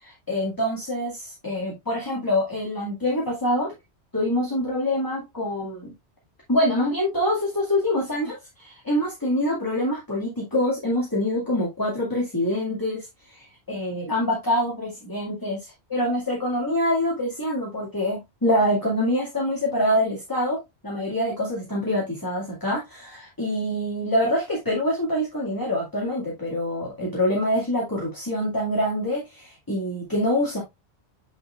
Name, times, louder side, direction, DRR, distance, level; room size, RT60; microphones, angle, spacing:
voice 1, 0.0-3.7 4.1-5.9 6.5-20.6 20.8-30.6, left 1 dB, 20° left, 2.2 m, -25 dB
9.4 x 4.6 x 2.4 m
omnidirectional pair, 1.1 m